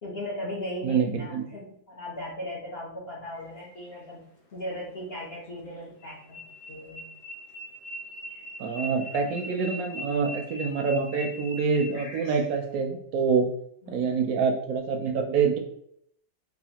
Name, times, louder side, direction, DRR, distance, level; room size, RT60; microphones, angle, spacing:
voice 1, 0.0-4.3 4.5-6.4 6.7-7.0 13.8-14.1, left 1 dB, 50° left, -3 dB, 0.8 m, -37 dB
voice 2, 0.8-1.4 8.6-13.5 13.9-15.6, right 5 dB, 70° right, 2 dB, 0.9 m, -26 dB
sound 1, 3.3-4.0 5.7-12.6, equal, 75° left, 1.6 m, -41 dB
4.1 x 2.4 x 2.8 m, 0.68 s
omnidirectional pair, 1.8 m